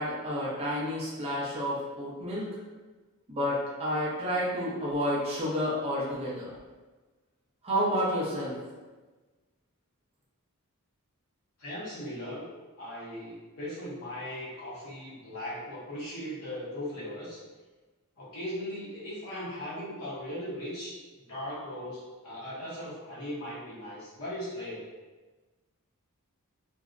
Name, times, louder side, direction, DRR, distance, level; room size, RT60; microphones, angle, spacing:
voice 1, 0.0-2.5 3.3-6.5 7.6-8.6, equal, 25° right, -7 dB, 0.6 m, -30 dB
voice 2, 11.6-12.5 12.8-17.4 18.2-24.8, equal, 65° left, -8 dB, 0.8 m, -38 dB
2.6 x 2.0 x 2.4 m, 1.3 s
head